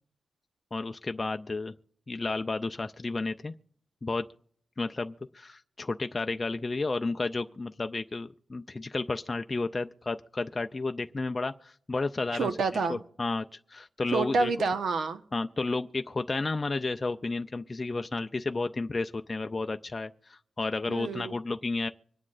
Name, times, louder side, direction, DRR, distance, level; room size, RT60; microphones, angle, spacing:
voice 1, 0.7-1.7 2.1-3.5 4.0-4.2 4.8-12.5 12.9-14.5 15.3-21.9, left 3 dB, 25° left, 0.4 m, -32 dB
voice 2, 12.3-13.0 14.1-15.2 20.9-21.3, right 4 dB, 85° right, 1.1 m, -28 dB
25.5 x 9.7 x 2.5 m
wide cardioid pair, 135°, 0 cm